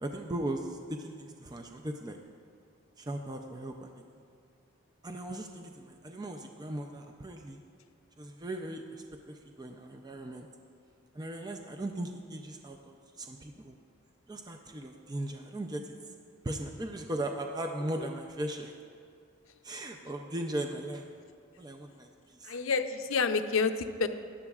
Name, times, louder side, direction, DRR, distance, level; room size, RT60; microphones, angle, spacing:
voice 1, 0.0-2.2 3.0-4.0 5.0-7.6 8.2-10.5 11.1-13.8 14.3-15.9 16.4-18.7 19.6-21.0 21.6-22.5, right 1 dB, 20° right, 3 dB, 0.4 m, -38 dB
voice 2, 22.4-24.1, left 4 dB, 80° left, 8 dB, 0.5 m, -29 dB
16.5 x 11.0 x 2.4 m, 2.3 s
head